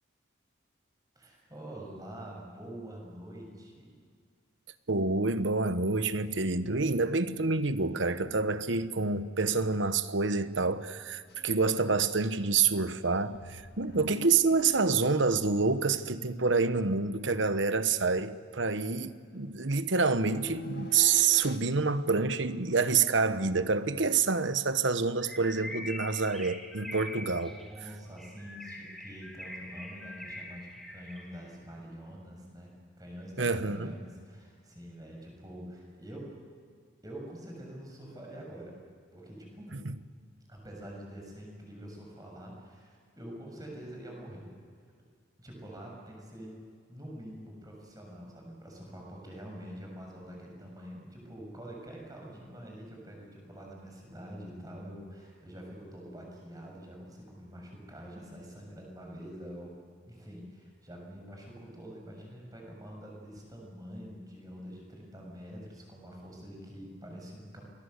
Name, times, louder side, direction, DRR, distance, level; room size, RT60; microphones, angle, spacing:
voice 1, 1.2-4.0 13.7-14.1 27.2-36.3 37.0-38.8 39.1-39.8 40.5-44.5 45.4-46.6 46.9-59.7 60.0-67.6, equal, 20° right, 7.0 m, -46 dB
voice 2, 4.9-27.5 33.4-33.9 39.7-39.9, right 4 dB, 70° right, 1.1 m, -27 dB
sound 1, 11.3-11.9 12.2-12.3 13.3-16.5 20.1-21.6, left 1 dB, 55° left, 1.8 m, -45 dB
Bird, 25.2-31.5, left 1 dB, ahead, 2.5 m, -44 dB
27.0 x 21.0 x 8.1 m
head